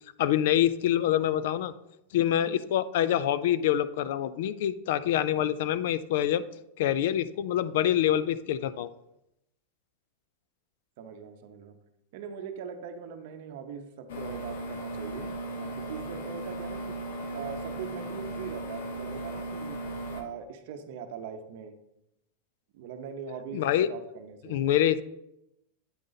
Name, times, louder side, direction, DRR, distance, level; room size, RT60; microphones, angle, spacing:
voice 1, 0.2-1.7 2.1-6.4 6.8-8.9 23.5-23.9 24.5-25.0, left 11 dB, 60° left, 15 dB, 0.3 m, -26 dB
voice 2, 11.0-11.7 12.1-17.0 17.3-19.8 20.1-21.7 22.7-24.6, right 7 dB, 50° right, 7 dB, 0.7 m, -41 dB
sound 1, 14.1-20.2, right 1 dB, 75° left, 1.1 m, -37 dB
8.7 x 3.8 x 4.0 m, 0.84 s
supercardioid pair, 170°, 0 cm